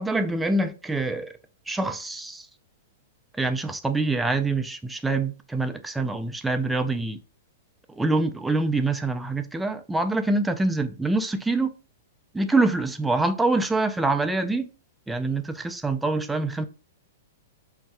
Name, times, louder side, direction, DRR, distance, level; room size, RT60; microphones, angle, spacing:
voice 1, 0.0-1.3 1.7-2.5 3.4-7.2 7.9-11.7 12.3-14.7 15.1-16.7, right 2 dB, 5° right, 0.3 m, -25 dB
2.6 x 2.2 x 3.3 m
hypercardioid pair, 140°, 0 cm